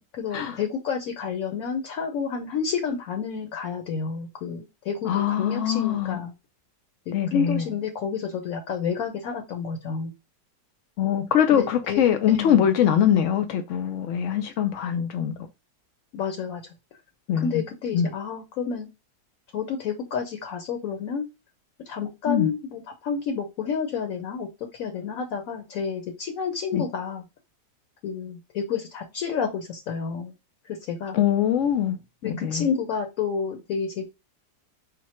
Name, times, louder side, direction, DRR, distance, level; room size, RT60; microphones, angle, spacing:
voice 1, 0.2-6.3 7.1-10.1 11.5-12.0 12.3-12.6 16.1-16.6 17.4-18.9 19.5-21.2 21.9-24.5 24.8-27.2 28.0-30.3 30.6-31.2 32.2-34.1, left 6 dB, 60° left, 1.0 m, -30 dB
voice 2, 5.0-6.2 7.1-7.6 11.0-15.3 17.3-17.6 17.9-18.1 22.3-22.5 26.7-26.8 31.1-32.0 32.2-32.7, left 9 dB, 90° left, 0.6 m, -23 dB
4.3 x 2.2 x 4.2 m
omnidirectional pair, 1.8 m